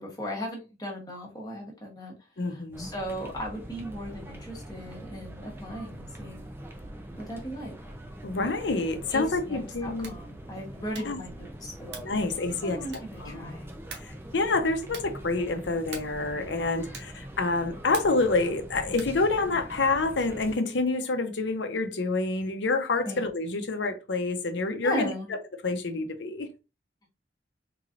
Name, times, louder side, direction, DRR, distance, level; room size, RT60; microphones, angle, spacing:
voice 1, 0.0-2.1 2.5-6.5 7.2-7.7 9.1-11.9 12.6-13.7 23.0-23.2 24.8-25.3, equal, 20° left, 1.1 m, -37 dB
voice 2, 2.4-2.9 8.2-10.1 11.0-11.2 12.0-12.8 13.2-13.5 14.0-25.4 25.6-26.5, left 3 dB, 90° left, 0.7 m, -28 dB
sound 1, 2.7-20.6, right 1 dB, 15° right, 0.5 m, -43 dB
sound 2, 9.9-10.3 10.9-11.3 11.9-12.2 12.9-13.3 13.9-14.2 14.9-15.2 15.9-16.3 16.9-17.2 17.9-18.3 18.9-19.2, right 5 dB, 80° right, 1.0 m, -44 dB
3.8 x 3.1 x 2.5 m
head